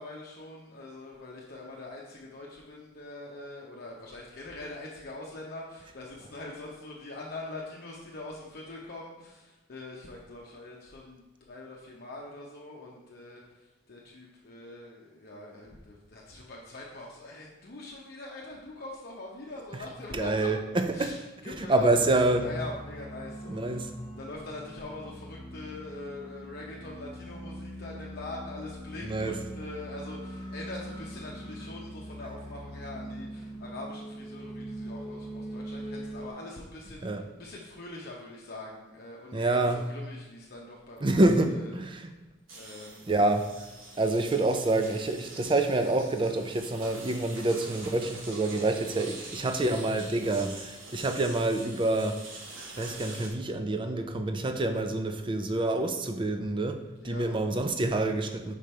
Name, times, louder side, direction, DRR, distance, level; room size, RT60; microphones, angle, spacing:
voice 1, 0.0-11.2 11.5-13.4 13.9-20.5 20.9-21.9 22.3-41.2 41.4-42.1 42.6-43.1 57.0-57.3, left 2 dB, 50° left, -3 dB, 0.8 m, -43 dB
voice 2, 20.1-21.1 21.4-22.5 23.5-23.9 29.0-29.4 37.0-37.2 39.3-39.8 41.0-42.1 43.1-43.5 44.0-52.2 52.8-58.5, right 2 dB, 25° right, 7 dB, 0.5 m, -27 dB
sound 1, 21.9-36.3, equal, ahead, 1.1 m, -42 dB
sound 2, 42.5-53.3, right 2 dB, 90° right, 1.3 m, -45 dB
5.1 x 5.1 x 4.3 m, 1.1 s
head